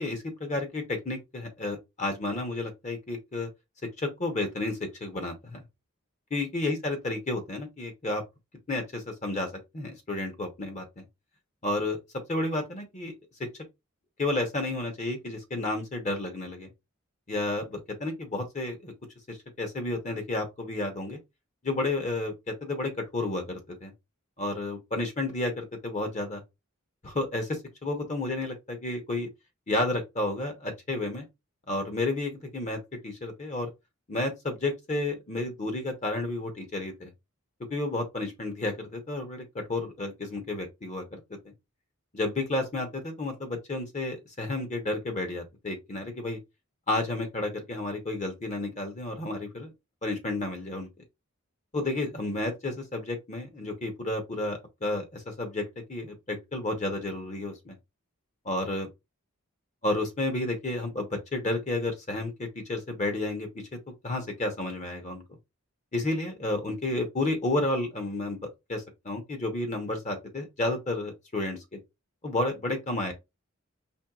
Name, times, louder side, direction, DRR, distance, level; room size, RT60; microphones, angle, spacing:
voice 1, 0.0-3.5 4.0-5.6 6.3-8.2 8.7-9.5 9.7-11.0 11.6-12.0 12.3-13.1 14.2-16.7 17.3-18.9 19.3-21.2 21.6-23.9 24.4-26.4 27.0-29.3 29.7-31.2 31.7-33.7 34.1-37.1 37.7-41.2 41.4-41.5 42.1-46.4 46.9-49.7 50.0-50.9 51.7-57.8 58.4-58.9 59.8-63.6 64.0-65.2 65.9-71.8 72.2-73.1, left 2 dB, 35° left, 0.8 m, -31 dB
4.4 x 3.2 x 2.3 m
head